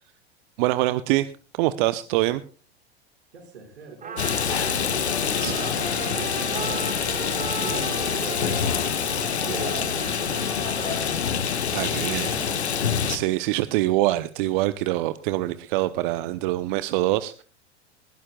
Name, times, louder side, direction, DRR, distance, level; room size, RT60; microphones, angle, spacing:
voice 1, 0.6-2.4 5.4-5.5 11.7-12.3 13.1-17.4, right 17 dB, 50° right, 13 dB, 0.8 m, -24 dB
voice 2, 3.3-11.5 11.8-12.7, right 4 dB, 75° right, 3 dB, 5.5 m, -40 dB
Trumpet, 4.0-11.2, right 6 dB, 25° right, 5.0 m, -37 dB
Rain, 4.2-13.2, left 7 dB, 80° left, 1.6 m, -26 dB
20.5 x 15.5 x 2.3 m, 0.37 s
figure-of-eight pair, 90°, 32 cm